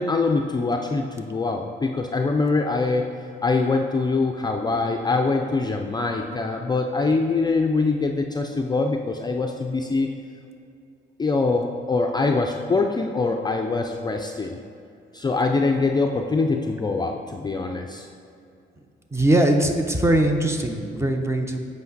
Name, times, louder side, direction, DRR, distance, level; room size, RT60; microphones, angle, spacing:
voice 1, 0.0-3.1 3.4-10.1 11.2-14.6 15.1-18.1, left 3 dB, 20° left, 3 dB, 0.4 m, -23 dB
voice 2, 19.1-21.6, right 1 dB, 15° right, 4 dB, 0.7 m, -21 dB
8.1 x 5.2 x 4.0 m, 2.6 s
cardioid pair, 90°, 20 cm